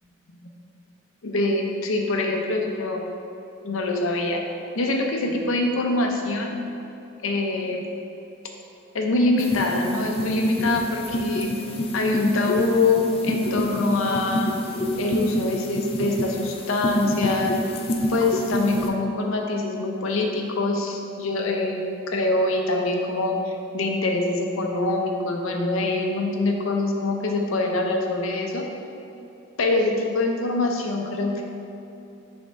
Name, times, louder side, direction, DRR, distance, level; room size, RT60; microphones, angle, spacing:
voice 1, 1.2-3.0 3.6-4.4 4.8-6.6 7.2-7.8 8.9-11.5 11.9-14.5 15.0-17.5 18.1-28.7 29.6-31.4, left 2 dB, 90° left, 2 dB, 0.7 m, -24 dB
sound 1, 9.4-18.9, equal, 30° left, 0.4 m, -28 dB
8.1 x 3.6 x 3.4 m, 2.8 s
head